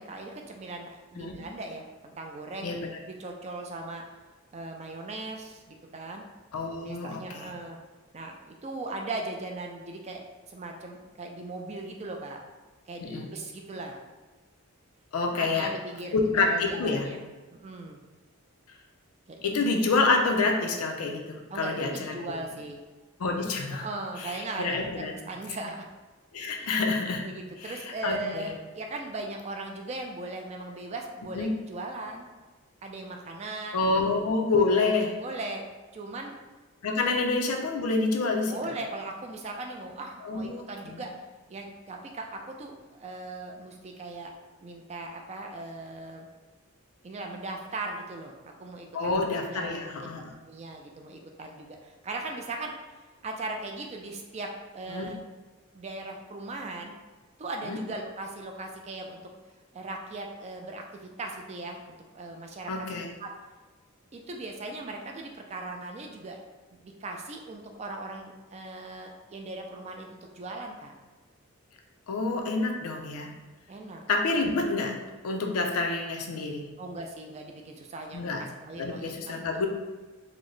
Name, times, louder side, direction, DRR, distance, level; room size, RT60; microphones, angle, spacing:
voice 1, 0.0-2.7 3.1-4.0 4.5-6.2 6.8-7.8 8.1-12.4 12.9-14.0 15.3-17.2 17.5-18.0 19.3-19.5 21.5-22.8 23.7-25.8 26.5-26.8 27.2-32.2 32.8-34.0 34.7-35.6 35.9-36.3 37.1-37.2 38.5-41.1 41.5-46.3 47.0-49.2 49.5-49.8 50.5-52.7 53.2-55.2 55.7-56.9 57.4-59.2 59.7-62.7 63.2-63.3 64.1-66.4 66.7-71.0 73.7-74.0 76.8-79.1 79.4-79.7, right 2 dB, 30° right, 2 dB, 0.3 m, -39 dB
voice 2, 2.6-3.0 6.5-7.5 13.0-13.3 15.1-15.7 16.1-17.1 19.4-22.1 23.2-23.9 24.2-25.1 26.3-27.3 27.6-27.8 28.0-28.5 31.4-31.6 33.7-35.1 36.8-38.6 40.2-41.0 48.9-50.2 54.9-55.1 57.7-57.8 62.7-63.1 72.1-73.3 74.1-75.0 75.2-76.7 78.1-78.4 78.7-79.7, left 3 dB, 80° left, 2 dB, 0.5 m, -27 dB
3.9 x 2.0 x 3.1 m, 1.3 s
head